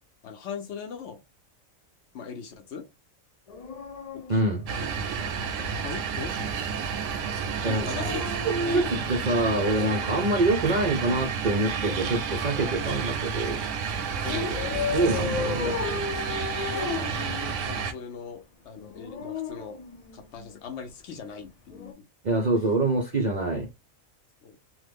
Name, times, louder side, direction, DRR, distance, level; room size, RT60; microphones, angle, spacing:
voice 1, 0.2-1.2 2.1-2.9 4.1-4.4 4.7-4.9 5.7-6.5 7.5-8.2 8.6-8.9 14.2-15.1 16.7-19.8 20.1-22.1 24.4-24.6, left 6 dB, 65° left, 0.8 m, -40 dB
Dog, 3.5-5.3 7.8-10.2 11.5-13.1 14.3-17.8 18.8-20.5 21.7-21.9, left 4 dB, 90° left, 0.3 m, -35 dB
voice 2, 4.3-4.6 7.6-8.1 8.7-8.8 9.1-13.6 14.9-15.7 22.2-23.7, right 2 dB, 55° right, 0.5 m, -25 dB
sound 1, 4.7-17.9, right 6 dB, 75° right, 0.9 m, -31 dB
3.0 x 2.1 x 3.3 m
omnidirectional pair, 1.4 m